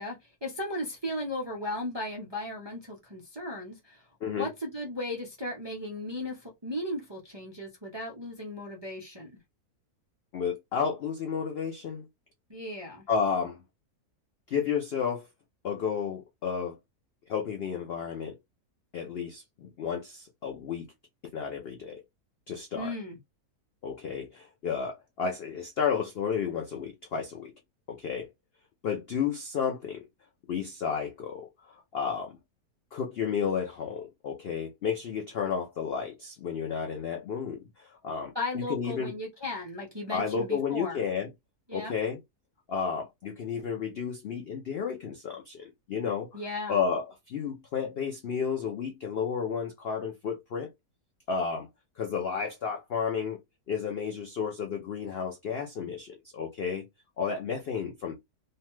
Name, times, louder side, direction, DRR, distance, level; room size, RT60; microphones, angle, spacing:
voice 1, 0.0-4.0 4.3-9.3 12.5-13.0 22.7-23.2 38.3-41.0 41.7-42.0 46.3-46.8, left 1 dB, 35° right, 0.4 m, -36 dB
voice 2, 4.2-4.5 10.3-12.1 13.1-13.6 14.5-15.2 15.6-16.8 17.3-18.4 18.9-20.9 21.2-22.0 22.5-22.9 23.8-27.5 27.9-28.3 28.8-30.0 30.5-32.4 32.9-39.1 40.1-41.3 41.7-42.2 42.7-46.4 46.7-50.7 51.3-51.7 52.0-53.4 53.7-56.9 57.2-58.1, left 6 dB, 80° left, 0.5 m, -32 dB
2.8 x 2.2 x 3.0 m
omnidirectional pair, 1.7 m